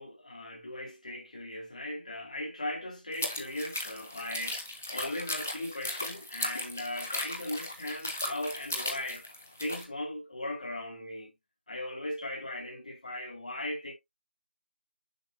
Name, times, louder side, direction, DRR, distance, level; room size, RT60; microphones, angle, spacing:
voice 1, 0.0-9.2 9.6-11.4 11.7-13.9, left 1 dB, 35° left, 2.3 m, -38 dB
sound 1, 3.1-9.8, left 1 dB, 10° left, 0.3 m, -37 dB
6.5 x 5.6 x 2.7 m
figure-of-eight pair, 170°, 6 cm